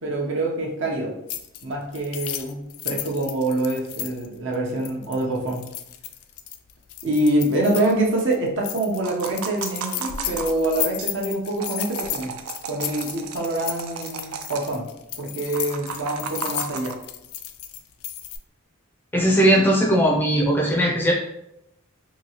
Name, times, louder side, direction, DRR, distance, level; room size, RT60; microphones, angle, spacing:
voice 1, 0.0-1.2 1.6-5.6 7.0-12.3 12.7-14.9 15.2-17.0, right 1 dB, 60° right, -1 dB, 0.7 m, -25 dB
sound 1, 1.3-1.6 1.9-8.4 8.6-18.4, left 11 dB, 80° left, 0.3 m, -34 dB
sound 2, 9.0-11.1 11.5-14.7 15.5-16.9, right 6 dB, 75° right, 0.3 m, -35 dB
voice 2, 19.1-21.1, right 1 dB, 10° left, -1 dB, 0.4 m, -18 dB
2.9 x 2.7 x 2.8 m, 0.82 s
head